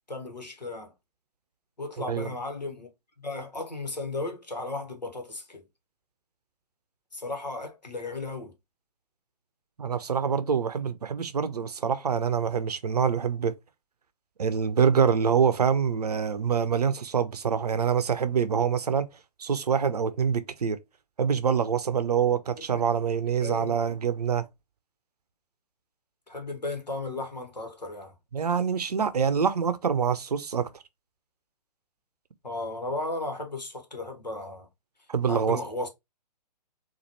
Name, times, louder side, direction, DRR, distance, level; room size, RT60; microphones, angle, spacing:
voice 1, 0.1-0.9 1.8-2.9 3.2-5.6 7.1-8.5 22.7-22.8 23.4-23.7 26.3-28.1 32.4-34.7 35.3-35.9, left 2 dB, 85° left, 1.2 m, -35 dB
voice 2, 9.8-13.5 14.4-19.1 19.4-20.8 21.2-24.5 28.3-30.7 35.1-35.6, right 7 dB, 70° right, 0.6 m, -25 dB
4.0 x 2.5 x 2.9 m
figure-of-eight pair, 125°, 21 cm